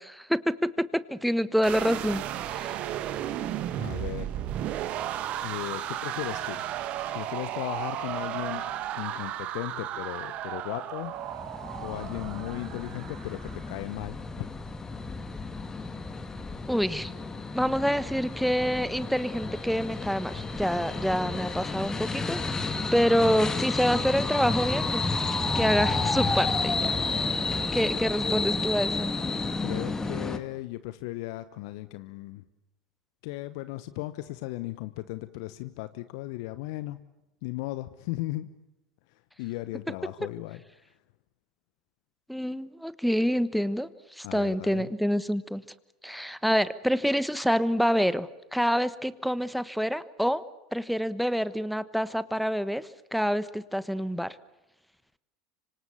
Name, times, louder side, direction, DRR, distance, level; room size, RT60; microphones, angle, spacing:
voice 1, 0.0-2.2 2.5-2.8 16.7-17.1 17.5-25.1 25.5-26.9 27.2-27.4 27.7-29.1 42.3-45.6 46.0-50.4 50.7-54.4, equal, ahead, 16 dB, 1.2 m, -27 dB
sound 1, 1.6-13.7, right 11 dB, 45° right, 1.8 m, -34 dB
voice 2, 3.8-4.3 5.4-6.6 7.1-11.1 11.8-14.5 29.6-32.4 33.2-37.0 37.4-38.5 39.4-40.6 44.2-44.9, left 18 dB, 60° left, 14 dB, 0.9 m, -36 dB
sound 2, 11.2-30.4, left 3 dB, 20° left, 2.3 m, -31 dB
26.0 x 25.5 x 7.0 m, 0.93 s
hypercardioid pair, 80°, 3 cm